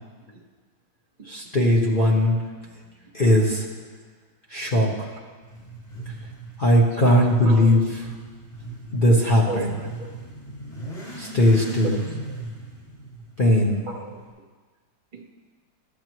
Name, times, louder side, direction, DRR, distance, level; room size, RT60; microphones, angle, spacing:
voice 1, 1.3-2.4 3.1-3.7 4.5-5.1 6.6-7.8 8.9-9.7 11.2-12.0 13.4-13.8, equal, 35° left, -3 dB, 0.9 m, -19 dB
Motorcycle / Accelerating revving vroom, 5.4-14.3, right 2 dB, 20° left, 2.6 m, -39 dB
voice 2, 7.1-7.8 9.5-10.1 11.8-12.4 13.8-14.2 15.1-15.2, right 3 dB, 35° right, 1 dB, 0.8 m, -35 dB
12.5 x 8.6 x 3.0 m, 1.4 s
omnidirectional pair, 2.0 m